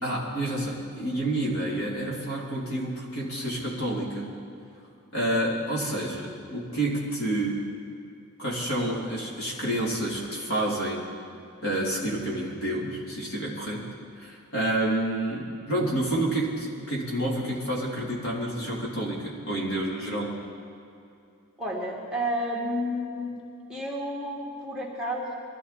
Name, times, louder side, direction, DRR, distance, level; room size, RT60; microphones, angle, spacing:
voice 1, 0.0-4.3 5.1-7.7 8.4-11.0 11.6-13.8 14.2-20.3, right 1 dB, 70° left, -3 dB, 3.3 m, -29 dB
voice 2, 21.6-23.3 23.7-25.3, equal, 5° right, -5 dB, 2.2 m, -31 dB
21.5 x 13.5 x 4.3 m, 2.6 s
head